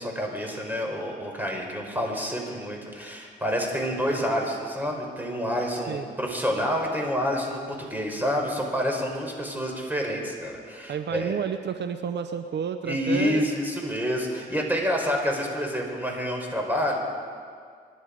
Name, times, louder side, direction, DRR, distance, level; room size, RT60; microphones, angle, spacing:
voice 1, 0.0-11.4 12.8-17.0, equal, 10° right, 1 dB, 4.3 m, -28 dB
voice 2, 10.9-13.5, right 7 dB, 70° right, 9 dB, 0.7 m, -30 dB
25.0 x 11.5 x 5.1 m, 2.1 s
cardioid pair, 75°, 18 cm